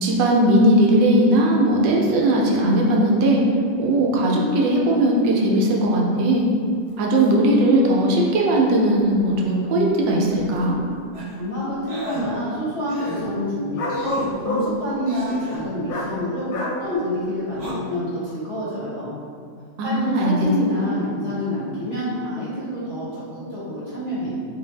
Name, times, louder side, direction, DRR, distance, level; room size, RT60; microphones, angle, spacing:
voice 1, 0.0-3.4 3.8-6.5 7.0-10.8 19.8-20.3 20.7-20.8, right 1 dB, 80° right, -2 dB, 1.3 m, -18 dB
sound 1, 6.3-6.4 6.9-7.0 7.2-7.3 8.3-8.4 9.2-9.3 10.0-11.0 13.8-14.7 15.9-16.1 16.5-16.8, left 1 dB, 85° left, 1.3 m, -28 dB
sound 2, 11.1-11.4 11.9-12.2 12.9-13.2 13.9-14.3 15.1-15.6 17.5-17.7, equal, 55° right, 0.9 m, -34 dB
voice 2, 11.4-16.5 16.8-19.1 19.8-24.3, left 1 dB, 45° left, -10 dB, 1.0 m, -27 dB
4.0 x 2.5 x 3.2 m, 2.3 s
omnidirectional pair, 2.0 m